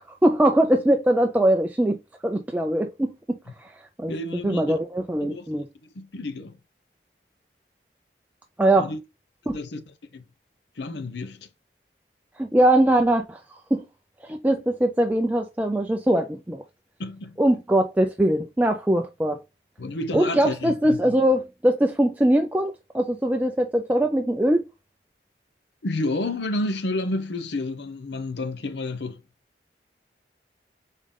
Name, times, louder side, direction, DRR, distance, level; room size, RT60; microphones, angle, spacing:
voice 1, 0.0-3.7 4.0-4.1 4.4-5.7 8.6-8.9 9.5-9.6 12.4-13.4 13.7-13.8 14.2-16.6 17.4-19.4 20.1-24.7, right 1 dB, 10° right, 0.3 m, -21 dB
voice 2, 4.1-4.8 5.2-5.5 5.9-6.6 8.8-9.0 9.5-10.2 10.8-11.5 17.0-17.4 19.8-21.2 25.8-29.2, left 2 dB, 75° left, 0.7 m, -30 dB
3.7 x 3.6 x 3.6 m
head